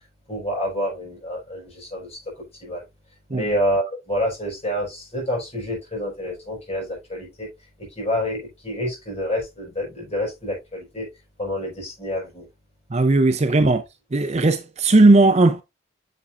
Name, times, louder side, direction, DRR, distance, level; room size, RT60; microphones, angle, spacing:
voice 1, 0.3-2.8 3.3-7.5 7.8-11.1 11.4-12.5, equal, 30° left, 5.6 m, -28 dB
voice 2, 12.9-13.8 14.1-15.6, right 2 dB, 30° right, 0.5 m, -16 dB
9.3 x 6.9 x 2.5 m
head